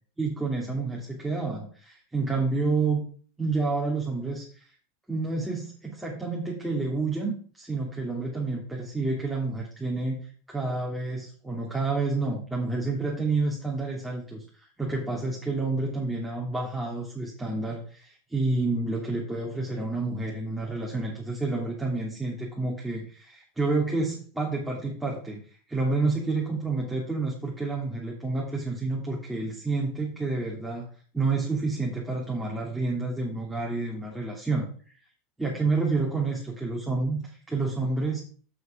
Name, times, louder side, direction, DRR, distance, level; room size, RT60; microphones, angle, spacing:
voice 1, 0.2-3.0 3.4-4.6 5.1-25.4 25.7-30.9 31.1-34.7 35.4-38.2, right 3 dB, 5° right, -3 dB, 3.1 m, -29 dB
8.3 x 6.2 x 5.3 m, 0.43 s
hypercardioid pair, 95°, 0 cm